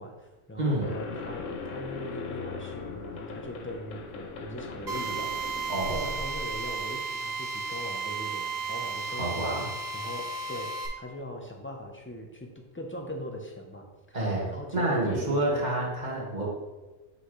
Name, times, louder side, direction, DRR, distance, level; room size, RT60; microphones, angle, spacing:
voice 1, 0.0-9.5 9.9-14.2 14.5-15.7 16.1-16.4, equal, 15° left, 2 dB, 0.4 m, -40 dB
voice 2, 0.6-0.9 5.7-6.1 9.1-9.7 14.1-14.5 14.7-16.5, right 1 dB, 35° right, -4 dB, 1.6 m, -28 dB
sound 1, 0.8-6.9, left 4 dB, 80° left, 1.1 m, -39 dB
Drill, 4.9-10.9, right 4 dB, 60° right, 1.3 m, -34 dB
7.9 x 4.1 x 3.1 m, 1.2 s
omnidirectional pair, 1.3 m